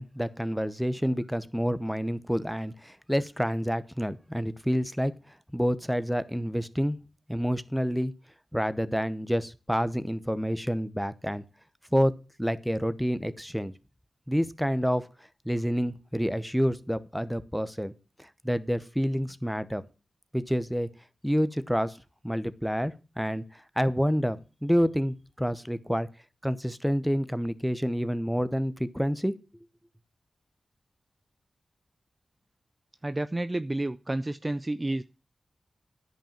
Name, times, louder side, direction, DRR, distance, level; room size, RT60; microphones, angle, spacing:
voice 1, 0.0-5.1 5.5-7.0 7.3-8.1 8.5-11.4 11.9-12.1 12.4-13.7 14.3-15.1 15.4-17.9 18.2-19.8 20.3-20.9 21.2-22.0 22.2-26.1 26.4-29.3, equal, ahead, 14 dB, 0.9 m, -28 dB
voice 2, 33.0-35.0, right 1 dB, 25° right, 13 dB, 0.5 m, -30 dB
10.0 x 5.6 x 7.3 m, 0.32 s
cardioid pair, 55°, 0 cm